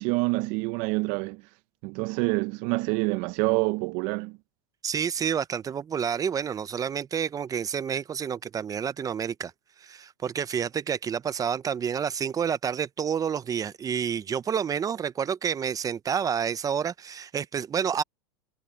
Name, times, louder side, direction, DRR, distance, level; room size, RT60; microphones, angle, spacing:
voice 1, 0.0-1.4 1.8-4.4, right 25 dB, 55° right, 0.7 m, -27 dB
voice 2, 4.8-9.5 9.8-18.0, right 7 dB, 20° right, 0.7 m, -29 dB
supercardioid pair, 115°, 16 cm